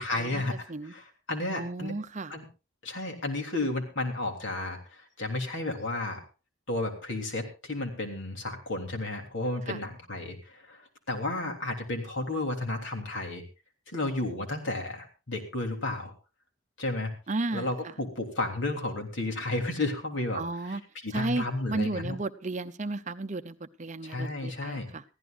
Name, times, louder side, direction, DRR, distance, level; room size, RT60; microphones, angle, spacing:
voice 1, 0.0-1.9 2.3-2.5 2.8-6.2 6.7-13.4 13.9-16.1 16.8-17.1 17.5-22.2 24.0-24.9, left 2 dB, 65° left, 3 dB, 3.4 m, -33 dB
voice 2, 1.5-2.3 9.7-9.8 17.3-17.7 20.3-20.8 21.1-25.0, right 2 dB, 35° right, 11 dB, 0.7 m, -33 dB
22.5 x 15.0 x 2.5 m, 0.30 s
head